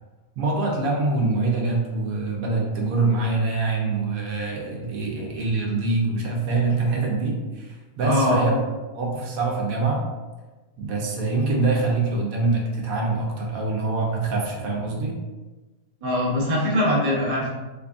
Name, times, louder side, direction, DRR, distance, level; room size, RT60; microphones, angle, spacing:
voice 1, 0.4-8.6 8.9-10.1 10.8-15.2, right 3 dB, 75° right, -1 dB, 1.1 m, -24 dB
voice 2, 8.0-8.5 16.0-17.5, left 1 dB, 35° right, -4 dB, 0.7 m, -22 dB
3.0 x 2.5 x 3.4 m, 1.2 s
omnidirectional pair, 1.5 m